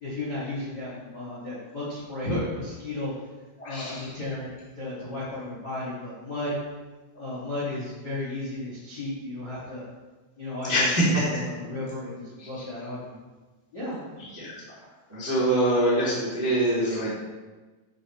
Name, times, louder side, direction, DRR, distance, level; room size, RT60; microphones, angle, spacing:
voice 1, 0.0-3.1 3.6-4.5 4.8-6.5 7.1-9.8 10.4-11.1 11.6-13.1 13.7-14.1, left 2 dB, 55° left, -8 dB, 1.1 m, -33 dB
voice 2, 3.6-4.2 10.6-11.2 12.4-12.7 14.2-14.5 15.1-17.1, right 1 dB, 10° right, -8 dB, 0.8 m, -25 dB
12.0 x 6.6 x 3.2 m, 1.2 s
omnidirectional pair, 5.9 m